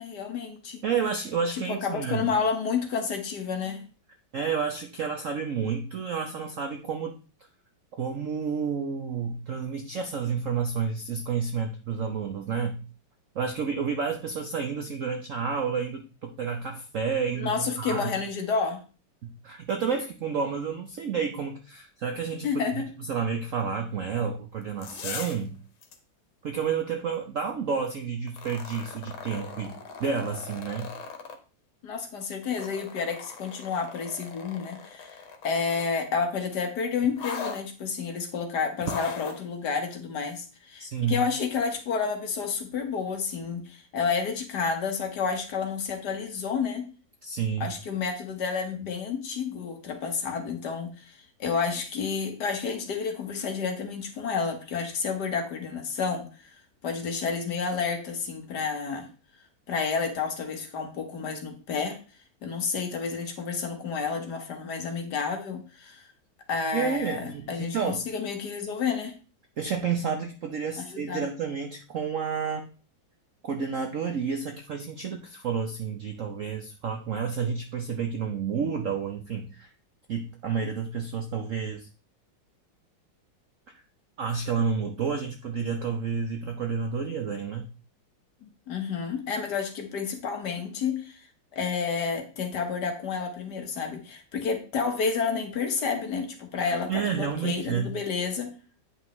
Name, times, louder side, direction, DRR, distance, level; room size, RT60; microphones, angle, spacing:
voice 1, 0.0-0.8 1.5-3.8 17.4-18.8 22.4-22.9 31.8-46.8 47.6-56.6 56.8-59.1 59.7-62.0 62.4-66.1 66.5-69.1 70.8-71.2 88.4-91.3 91.5-98.5, left 5 dB, 60° left, 4 dB, 1.6 m, -30 dB
voice 2, 0.8-2.3 4.3-7.2 7.9-12.8 13.3-18.1 19.2-22.5 22.7-22.8 23.1-25.6 26.4-30.9 40.8-41.2 47.2-47.7 66.7-68.0 69.6-72.7 73.4-79.7 80.1-81.9 84.2-87.7 96.6-97.9, right 6 dB, 65° right, 4 dB, 0.8 m, -30 dB
sound 1, 24.6-25.5 25.8-26.0 28.3-31.4 32.3-36.0 37.2-37.6 38.8-39.4 40.3-40.4, left 5 dB, 80° left, 1.9 m, -39 dB
8.7 x 5.5 x 3.1 m, 0.36 s
omnidirectional pair, 2.2 m